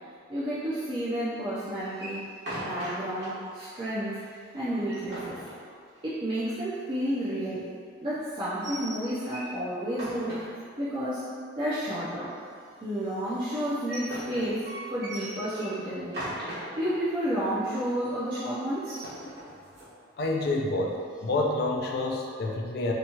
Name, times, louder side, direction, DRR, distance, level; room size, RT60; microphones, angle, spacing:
voice 1, 0.3-2.3 2.6-5.4 6.0-7.6 8.0-10.4 10.8-11.3 11.6-12.3 12.8-14.6 14.9-16.2 16.7-19.1, equal, 25° right, -12 dB, 0.4 m, -31 dB
sound 1, 1.9-3.3 3.6-3.7 4.0-4.1 4.6-6.2 8.4-9.5 9.9-11.0 13.5-17.0 17.4-17.5 17.7-18.1 18.7-19.9, right 1 dB, 55° right, 1.2 m, -39 dB
voice 2, 20.2-21.0 21.2-22.9, left 2 dB, 55° left, 0 dB, 0.3 m, -28 dB
2.9 x 2.3 x 2.8 m, 2.1 s
head